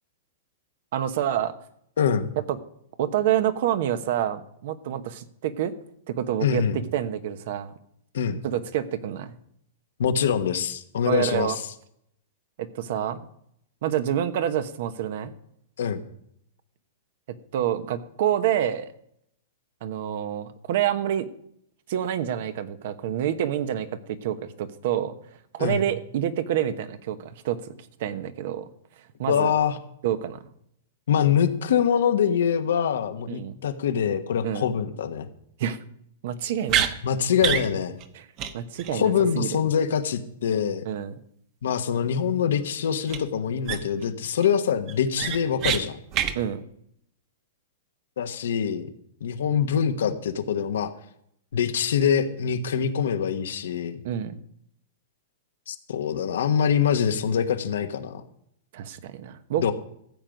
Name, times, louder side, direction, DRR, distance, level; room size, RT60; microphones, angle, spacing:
voice 1, 0.9-1.5 3.0-5.7 6.1-6.6 6.9-7.7 8.4-9.3 11.1-11.6 12.6-13.2 13.8-15.3 17.5-18.9 19.8-21.3 21.9-25.1 25.5-27.7 28.0-28.7 29.2-29.5 30.0-30.4 33.3-33.5 34.4-34.7 35.6-35.8 36.2-36.9 38.1-38.2 38.5-39.5 40.8-41.1 46.3-46.6 54.0-54.3 58.7-59.7, right 10 dB, 60° right, 11 dB, 1.0 m, -27 dB
voice 2, 2.0-2.3 6.4-6.8 8.1-8.4 10.0-11.5 15.8-16.0 25.6-25.8 29.3-29.8 31.1-35.3 37.0-38.0 38.9-40.8 41.6-46.0 48.2-48.9 49.2-50.9 51.5-54.0 55.7-58.2 59.6-59.7, left 8 dB, 80° left, 8 dB, 1.2 m, -24 dB
sound 1, 36.7-36.9 37.4-37.7 38.0-38.1 38.4-38.5 38.8-38.9 43.1-43.2 43.6-44.0 44.4-44.5 44.9-45.8 46.1-46.3, right 9 dB, 35° right, 1.1 m, -25 dB
14.0 x 7.7 x 5.2 m, 0.72 s
hypercardioid pair, 145°, 0 cm